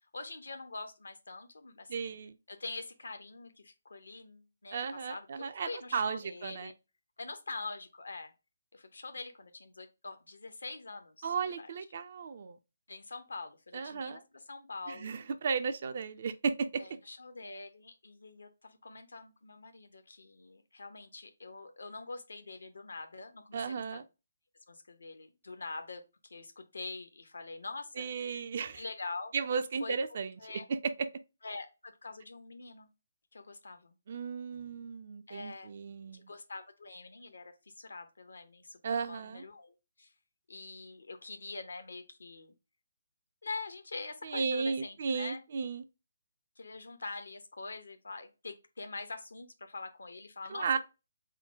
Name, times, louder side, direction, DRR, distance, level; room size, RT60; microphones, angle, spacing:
voice 1, 0.1-2.2 2.5-6.7 7.2-8.3 8.7-11.7 12.9-15.2 16.8-24.0 24.7-28.1 28.7-29.3 29.8-30.7 31.4-32.9 33.3-34.0 35.3-35.7 36.1-40.1 40.5-42.5 43.4-45.4 46.6-50.8, left 3 dB, 65° left, 0.8 m, -44 dB
voice 2, 1.9-2.3 4.7-6.7 11.2-12.6 13.7-14.2 14.9-16.8 23.5-24.0 28.0-28.8 29.3-30.3 30.7-31.1 34.1-36.3 38.8-39.4 44.2-45.8 50.5-50.8, right 5 dB, 45° right, 0.4 m, -34 dB
3.7 x 2.2 x 4.3 m
figure-of-eight pair, 140°, 0 cm